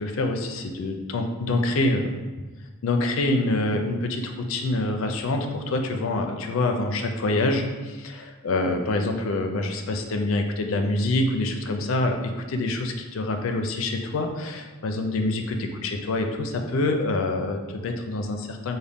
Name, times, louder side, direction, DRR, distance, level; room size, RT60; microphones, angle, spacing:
voice 1, 0.0-2.1 2.4-2.5 2.8-18.8, left 2 dB, 65° left, 4 dB, 0.4 m, -26 dB
3.9 x 2.1 x 3.5 m, 1.3 s
head